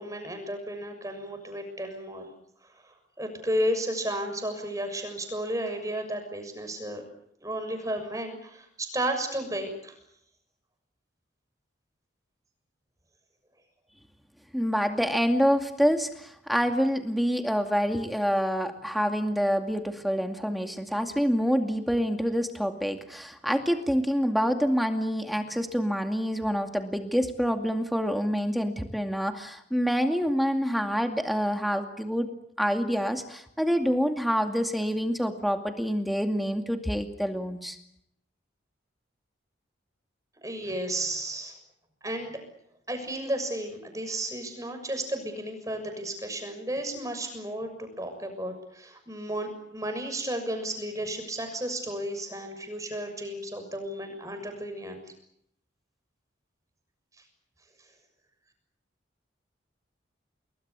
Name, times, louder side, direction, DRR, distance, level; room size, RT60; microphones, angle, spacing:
voice 1, 0.0-2.3 3.2-7.0 7.4-9.9 40.4-41.5 42.0-42.4 42.9-55.0, right 1 dB, 15° right, 6 dB, 6.7 m, -33 dB
voice 2, 14.5-37.8, equal, ahead, 5 dB, 2.3 m, -27 dB
29.5 x 21.0 x 8.3 m, 0.74 s
head